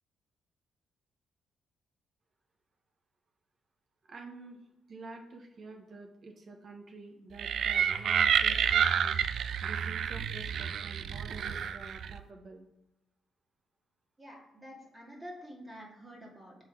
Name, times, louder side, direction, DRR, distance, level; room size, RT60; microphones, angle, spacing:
voice 1, 4.1-4.6 4.9-9.2 9.6-12.7, right 3 dB, 50° right, 3 dB, 1.2 m, -48 dB
sound 1, 7.4-12.2, right 8 dB, 65° right, 0.3 m, -29 dB
voice 2, 14.2-16.6, equal, 20° right, -2 dB, 2.0 m, -48 dB
6.9 x 4.1 x 4.6 m, 0.93 s
cardioid pair, 90°, 0 cm